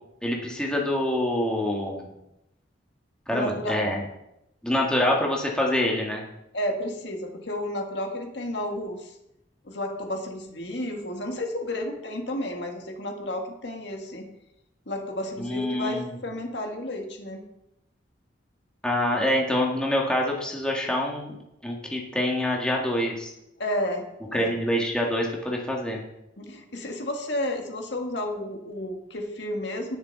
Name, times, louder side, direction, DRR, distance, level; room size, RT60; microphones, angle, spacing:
voice 1, 0.2-2.1 3.3-4.0 4.6-6.2 15.4-16.1 18.8-21.3 21.6-23.3 24.3-26.0, left 1 dB, 5° left, -2 dB, 1.7 m, -26 dB
voice 2, 3.3-3.9 6.5-9.2 9.6-14.3 14.8-17.4 23.6-24.0 24.3-24.5 26.4-30.0, left 1 dB, 60° left, 3 dB, 1.8 m, -32 dB
18.5 x 6.8 x 4.1 m, 0.86 s
head